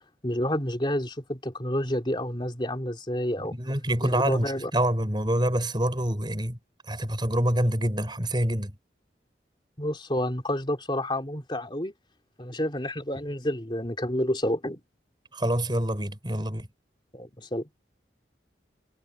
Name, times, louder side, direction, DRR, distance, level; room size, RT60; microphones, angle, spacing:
voice 1, 0.2-3.6 4.0-4.7 9.8-11.9 12.4-14.8 17.1-17.7, left 1 dB, 25° left, 3.3 m, -29 dB
voice 2, 3.5-6.6 6.9-8.8 15.3-16.7, right 1 dB, 25° right, 6.5 m, -26 dB
head